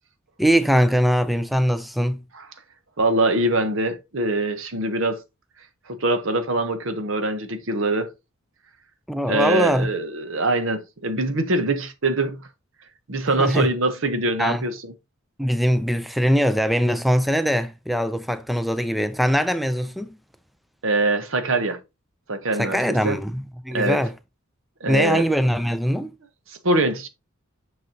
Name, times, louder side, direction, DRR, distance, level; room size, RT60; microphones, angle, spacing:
voice 1, 0.4-2.2 9.1-9.9 13.4-13.7 14.4-14.6 15.4-20.1 22.6-24.1 24.9-26.1, equal, ahead, 0.4 m, -21 dB
voice 2, 3.0-5.2 5.9-8.1 9.3-12.4 13.1-14.9 20.8-21.8 22.3-23.2 23.7-24.0 24.8-25.2 26.5-27.1, right 2 dB, 65° right, 1.0 m, -23 dB
6.4 x 6.1 x 2.8 m
head